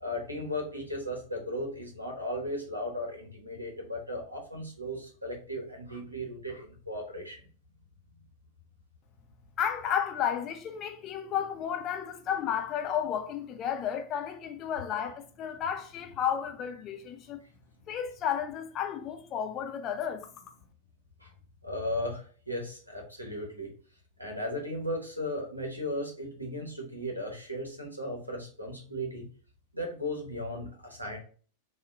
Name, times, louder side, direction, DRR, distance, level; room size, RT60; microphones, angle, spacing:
voice 1, 0.0-7.4 21.2-21.3 21.6-23.7 24.2-29.3 29.7-31.2, left 1 dB, 85° right, 0.8 m, -36 dB
voice 2, 9.6-17.4 17.9-20.3, left 8 dB, 30° left, 0.5 m, -32 dB
2.6 x 2.0 x 3.4 m
figure-of-eight pair, 90°, 0 cm